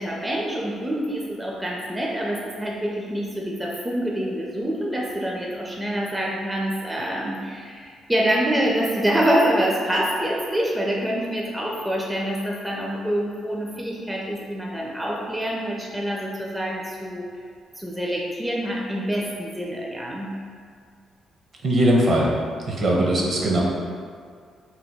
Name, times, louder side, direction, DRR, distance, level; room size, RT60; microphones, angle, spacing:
voice 1, 0.0-17.3 17.8-20.3, equal, 10° right, -3 dB, 0.4 m, -26 dB
voice 2, 21.6-22.3 22.7-23.6, right 1 dB, 55° right, -3 dB, 0.7 m, -20 dB
2.8 x 2.1 x 3.4 m, 2.1 s
cardioid pair, 90°, 0 cm